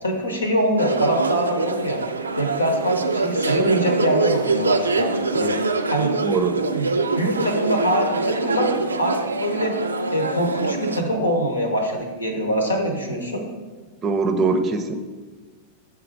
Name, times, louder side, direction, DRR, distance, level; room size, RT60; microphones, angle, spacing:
voice 1, 0.0-2.0 2.4-5.6 5.9-6.1 6.7-6.9 7.2-8.7 9.0-9.8 10.1-13.4, equal, 80° left, 3 dB, 0.9 m, -24 dB
sound 1, 0.8-11.0, right 3 dB, 75° right, 0.3 m, -24 dB
voice 2, 6.2-6.6 14.0-14.9, right 4 dB, 30° right, 8 dB, 0.5 m, -22 dB
6.7 x 3.7 x 4.4 m, 1.4 s
figure-of-eight pair, 90°, 0 cm